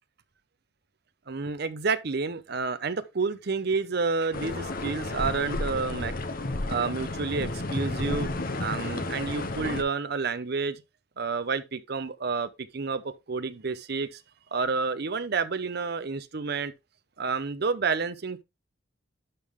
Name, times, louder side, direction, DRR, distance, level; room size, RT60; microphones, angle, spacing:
voice 1, 1.3-6.1 6.7-8.3 8.6-10.8 11.2-13.0 13.3-14.2 14.5-16.7 17.2-18.4, right 4 dB, 55° right, 0.7 m, -29 dB
sound 1, 4.3-9.8, left 2 dB, 45° left, 0.9 m, -32 dB
11.0 x 3.7 x 3.6 m
head